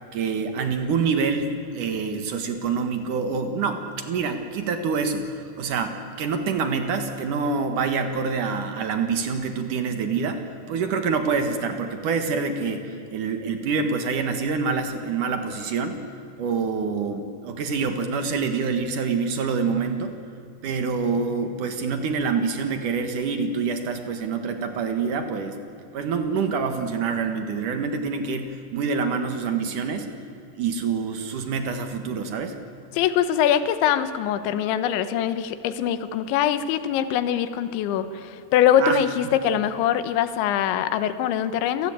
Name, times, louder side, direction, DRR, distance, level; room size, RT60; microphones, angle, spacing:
voice 1, 0.1-16.0 16.4-20.1 20.6-25.6 25.9-30.1 30.6-32.6 38.8-39.3, right 5 dB, 60° right, 7 dB, 2.3 m, -26 dB
voice 2, 32.9-41.9, left 9 dB, 80° left, 12 dB, 3.4 m, -23 dB
29.0 x 17.5 x 8.8 m, 2.6 s
omnidirectional pair, 5.3 m